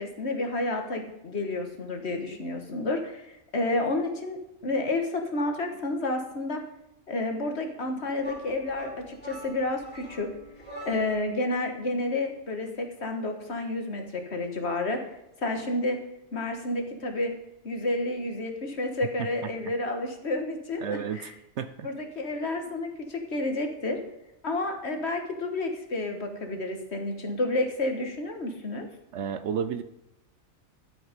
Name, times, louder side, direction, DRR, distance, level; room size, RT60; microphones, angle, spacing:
voice 1, 0.0-6.6 7.1-10.3 10.9-15.1 15.4-16.0 16.3-17.3 17.6-21.3 21.8-24.0 24.4-28.9, left 2 dB, 55° left, 4 dB, 1.8 m, -30 dB
sound 1, 8.2-11.3, equal, 5° left, 3.9 m, -44 dB
voice 2, 20.8-21.3 21.6-21.9 29.1-29.8, right 8 dB, 65° right, 12 dB, 0.9 m, -31 dB
13.0 x 7.8 x 5.2 m, 0.84 s
omnidirectional pair, 1.4 m